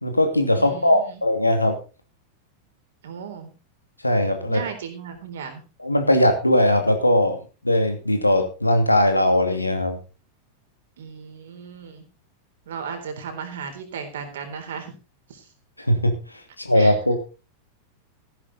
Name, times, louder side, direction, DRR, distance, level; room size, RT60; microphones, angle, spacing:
voice 1, 0.0-1.8 4.0-4.6 5.8-7.4 7.6-10.0 15.8-16.1 16.6-17.2, left 1 dB, 85° left, 6 dB, 2.6 m, -19 dB
voice 2, 0.5-1.2 3.0-3.5 4.5-5.6 11.0-12.1 12.7-14.9 15.3-15.5 16.7-17.0, right 6 dB, 60° right, 7 dB, 3.8 m, -35 dB
14.5 x 11.0 x 4.1 m, 0.33 s
figure-of-eight pair, 90°, 0 cm